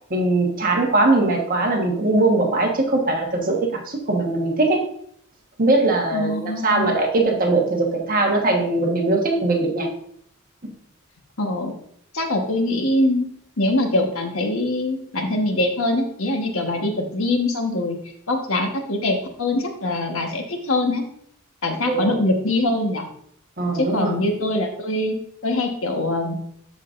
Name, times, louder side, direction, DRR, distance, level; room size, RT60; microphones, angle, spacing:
voice 1, 0.1-4.9 5.6-9.9 10.6-10.7 21.9-22.1 23.6-24.2, right 2 dB, 40° right, 0 dB, 1.4 m, -20 dB
voice 2, 6.1-6.9 11.4-11.7 12.1-13.3 13.6-18.0 18.3-21.0 21.6-23.1 23.7-25.2 25.4-26.4, left 1 dB, 65° left, 3 dB, 1.4 m, -23 dB
13.5 x 5.1 x 2.6 m, 0.67 s
head